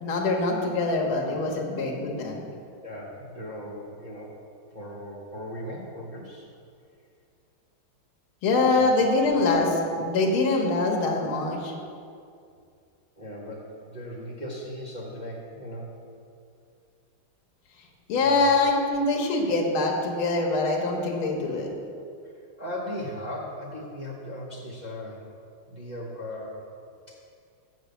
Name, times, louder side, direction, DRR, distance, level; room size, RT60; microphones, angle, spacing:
voice 1, 0.0-2.4 8.4-11.7 18.1-21.7, left 3 dB, 75° left, -1 dB, 1.9 m, -24 dB
voice 2, 2.8-4.4 4.7-6.5 8.8-8.9 13.2-15.9 18.2-18.5 22.2-25.3 25.7-26.6 27.1-27.2, equal, 30° right, -5 dB, 0.9 m, -38 dB
8.0 x 6.2 x 6.8 m, 2.4 s
omnidirectional pair, 2.3 m